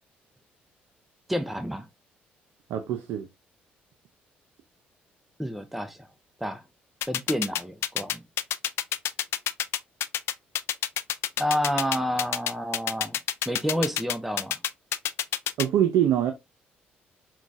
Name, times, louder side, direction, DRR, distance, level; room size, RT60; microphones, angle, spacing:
voice 1, 1.3-1.8 5.4-6.1 6.4-6.6 7.1-8.2 11.4-13.2 13.5-14.6, equal, 5° right, 0.5 m, -29 dB
voice 2, 2.7-3.3 15.6-16.3, right 10 dB, 70° right, 0.5 m, -23 dB
sound 1, 7.0-15.6, left 11 dB, 65° left, 0.4 m, -27 dB
5.8 x 2.3 x 2.5 m
hypercardioid pair, 55°, 5 cm